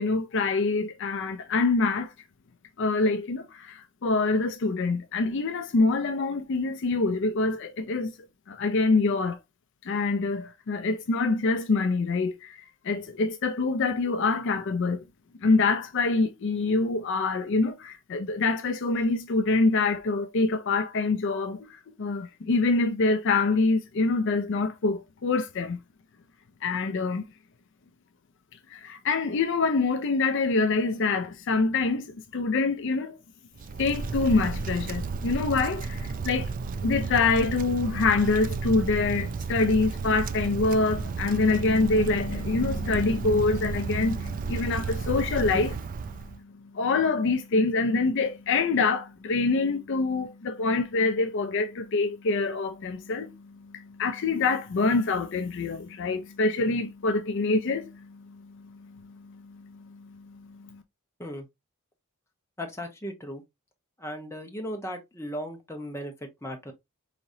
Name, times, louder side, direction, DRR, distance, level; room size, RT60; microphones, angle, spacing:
voice 1, 0.0-2.1 2.8-8.1 8.5-9.4 9.8-15.0 15.4-21.7 22.0-25.8 26.6-27.2 28.7-33.2 33.8-36.5 36.8-45.7 46.3-60.8, left 3 dB, 55° left, 0.5 m, -26 dB
Wind, 33.6-46.4, right 4 dB, 35° right, 0.3 m, -32 dB
voice 2, 62.6-63.4 64.0-66.7, equal, 10° left, 0.9 m, -36 dB
4.9 x 2.9 x 2.6 m
head